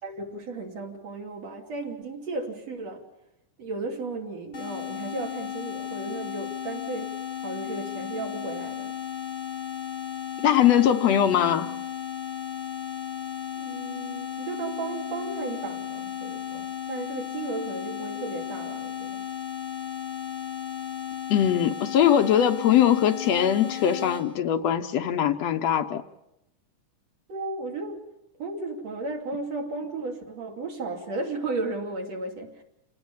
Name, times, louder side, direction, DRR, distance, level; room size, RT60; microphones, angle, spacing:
voice 1, 0.0-3.0 3.6-7.2 7.4-8.9 13.6-19.3 27.3-28.0 28.4-32.6, right 3 dB, 55° right, 2 dB, 4.0 m, -34 dB
sound 1, 4.5-24.2, left 10 dB, 40° left, 4.8 m, -35 dB
voice 2, 10.4-11.7 21.3-26.0, left 10 dB, 65° left, 7 dB, 1.9 m, -21 dB
28.0 x 18.5 x 7.3 m, 0.88 s
omnidirectional pair, 3.5 m